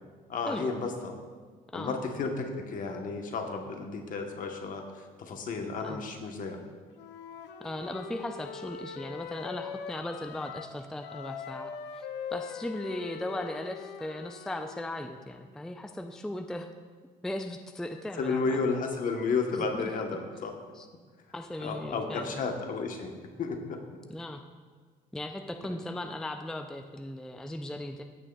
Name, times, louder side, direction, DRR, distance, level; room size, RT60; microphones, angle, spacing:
voice 1, 0.3-1.2 1.7-6.6 18.2-20.5 21.6-23.1 23.4-23.8, left 4 dB, 55° left, 4 dB, 1.1 m, -32 dB
Wind instrument woodwind instrument, 6.9-10.7 11.0-15.0, left 7 dB, 80° left, 0.5 m, -42 dB
voice 2, 7.6-16.7 17.2-18.6 19.7-19.9 20.7-20.9 21.3-22.4 24.1-24.4 25.1-28.0, left 1 dB, 5° left, 6 dB, 0.4 m, -37 dB
15.5 x 6.2 x 2.3 m, 1.5 s
cardioid pair, 110°, 17 cm